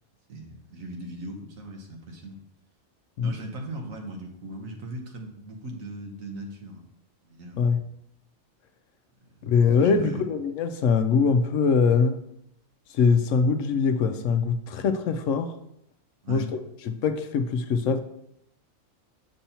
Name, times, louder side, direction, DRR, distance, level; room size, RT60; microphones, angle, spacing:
voice 1, 0.3-2.4 3.2-6.9 7.2-7.9 9.4-9.5 9.7-10.2 16.2-16.5, right 1 dB, 80° right, 2 dB, 1.5 m, -38 dB
voice 2, 9.4-12.2 12.9-15.5 16.3-16.4 16.9-18.0, left 5 dB, 75° left, 8 dB, 0.9 m, -22 dB
6.9 x 6.2 x 2.9 m, 0.78 s
omnidirectional pair, 1.4 m